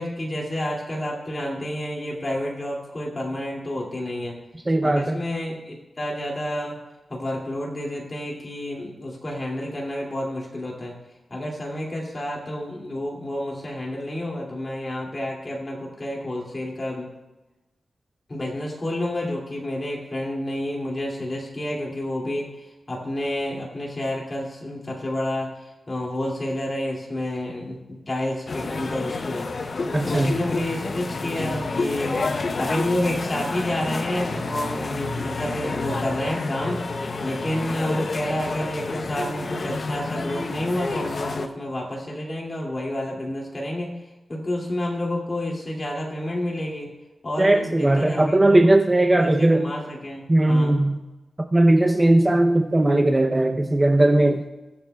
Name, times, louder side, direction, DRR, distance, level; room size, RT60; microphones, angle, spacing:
voice 1, 0.0-4.4 4.8-6.8 7.1-11.0 11.3-17.1 18.3-29.5 30.0-32.3 32.6-36.9 37.2-43.9 44.3-46.9 47.2-48.6 49.2-50.8, left 1 dB, 30° left, -2 dB, 2.4 m, -29 dB
voice 2, 4.7-5.2 29.9-30.4 47.4-49.7 50.3-51.0 51.5-54.5, right 1 dB, 20° right, 4 dB, 0.6 m, -18 dB
sound 1, 28.5-41.5, left 3 dB, 50° left, 0.6 m, -29 dB
21.0 x 7.0 x 2.3 m, 1.1 s
wide cardioid pair, 110°, 0 cm